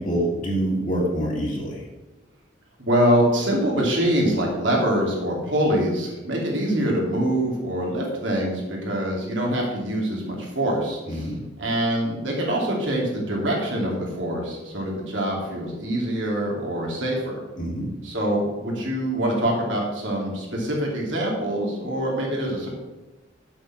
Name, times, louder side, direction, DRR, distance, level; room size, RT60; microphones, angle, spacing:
voice 1, 0.0-1.8 11.1-11.4 17.6-17.9, right 1 dB, 40° left, -4 dB, 1.8 m, -26 dB
voice 2, 2.8-11.3 11.6-17.4 18.0-22.7, right 1 dB, 75° right, -2 dB, 2.7 m, -24 dB
7.6 x 6.8 x 5.9 m, 1.1 s
head